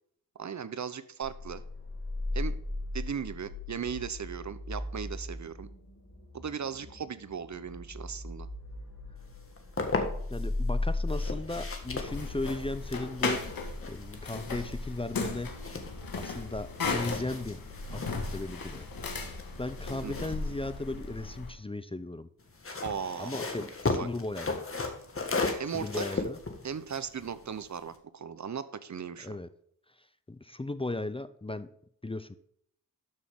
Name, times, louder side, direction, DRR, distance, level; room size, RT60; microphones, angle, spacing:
voice 1, 0.4-1.6 2.3-2.6 2.9-5.7 6.3-8.5 20.0-20.1 22.8-23.5 24.0-24.1 25.6-26.2 26.6-29.4, right 7 dB, 55° right, 14 dB, 0.8 m, -37 dB
sound 1, 1.2-13.8, left 2 dB, 55° left, 4.3 m, -37 dB
sound 2, 9.4-10.5 11.1-16.5 16.7-21.4 22.4-28.0, left 3 dB, 40° left, 1.7 m, -37 dB
voice 2, 10.3-15.5 16.2-17.6 17.9-18.9 19.6-22.3 23.2-24.6 25.7-26.4 29.2-29.5 30.0-31.7 32.0-32.4, left 2 dB, 15° left, 13 dB, 0.6 m, -36 dB
sound 3, 11.8-21.5, left 3 dB, 75° left, 1.8 m, -36 dB
12.5 x 6.3 x 3.6 m, 0.69 s
cardioid pair, 75°, 35 cm